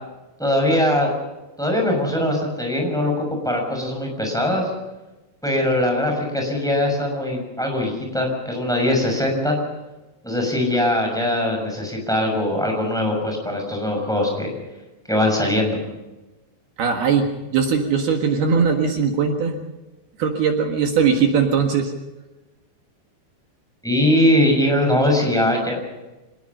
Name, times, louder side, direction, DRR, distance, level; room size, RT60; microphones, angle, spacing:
voice 1, 0.4-1.1 1.6-4.7 5.4-9.6 10.2-14.5 15.1-15.8 23.8-25.8, left 1 dB, ahead, 1 dB, 5.8 m, -21 dB
voice 2, 16.8-17.3 17.5-19.5 20.2-21.9, right 6 dB, 60° right, 3 dB, 3.2 m, -20 dB
26.0 x 20.0 x 5.5 m, 1.1 s
omnidirectional pair, 5.5 m